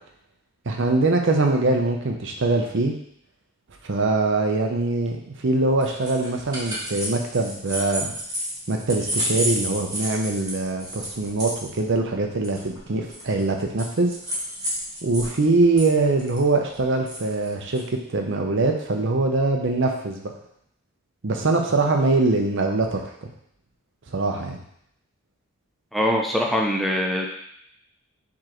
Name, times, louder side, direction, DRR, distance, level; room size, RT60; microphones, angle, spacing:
voice 1, 0.7-2.9 3.8-8.1 8.7-14.1 15.0-20.3 21.2-23.3 24.1-24.6, right 3 dB, 60° right, 3 dB, 0.7 m, -23 dB
sound 1, 5.8-15.3 15.6-17.8, equal, 20° right, 1.4 m, -31 dB
voice 2, 25.9-27.3, equal, ahead, 0 dB, 0.5 m, -23 dB
4.9 x 3.6 x 3.0 m, 0.70 s
head